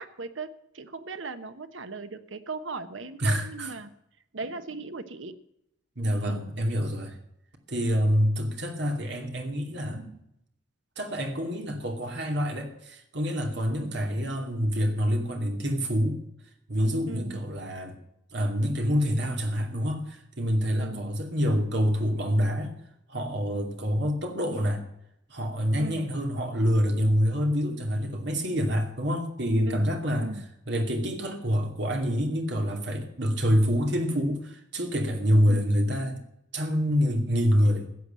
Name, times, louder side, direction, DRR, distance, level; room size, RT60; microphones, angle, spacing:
voice 1, 0.0-3.9 4.3-5.4 6.3-6.5 7.9-8.0 13.6-13.9 17.1-17.4 20.8-21.1 25.8-26.1 29.6-30.4 35.5-35.6, right 3 dB, 75° right, 10 dB, 1.1 m, -38 dB
voice 2, 3.2-3.7 6.0-7.2 7.7-10.2 11.0-16.2 16.7-18.0 18.3-22.7 23.1-24.8 25.3-30.4 30.7-36.2 36.5-37.9, equal, 60° right, 3 dB, 2.6 m, -26 dB
15.0 x 8.0 x 7.6 m, 0.79 s
head